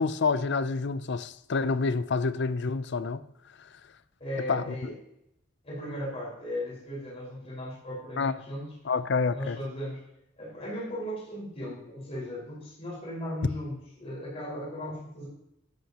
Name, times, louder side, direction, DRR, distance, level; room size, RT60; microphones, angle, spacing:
voice 1, 0.0-3.2 4.5-4.9 8.2-8.3 8.9-9.6, left 4 dB, 60° left, 0.5 m, -28 dB
voice 2, 4.2-4.9 5.6-8.7 9.3-10.0 10.4-15.3, equal, 30° left, 4.9 m, -37 dB
12.5 x 11.5 x 2.9 m
head